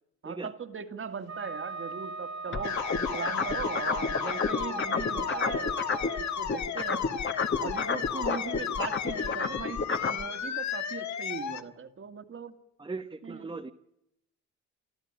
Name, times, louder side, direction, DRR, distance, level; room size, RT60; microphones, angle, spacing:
voice 1, 0.2-2.8 3.1-5.7 6.2-7.1 7.6-12.5 13.2-13.5, right 6 dB, 45° right, 8 dB, 2.1 m, -39 dB
Wind instrument woodwind instrument, 1.3-6.4, right 4 dB, 60° right, 2.0 m, -39 dB
sound 1, 2.5-6.2 6.5-10.2, left 5 dB, 40° left, 1.9 m, -30 dB
voice 2, 2.5-2.9 5.0-5.1 8.1-8.5 12.8-13.7, right 3 dB, 15° right, 5 dB, 1.1 m, -40 dB
sound 2, 2.6-11.6, left 8 dB, 65° left, 1.6 m, -34 dB
29.5 x 12.5 x 8.8 m, 0.85 s
cardioid pair, 90°, 30 cm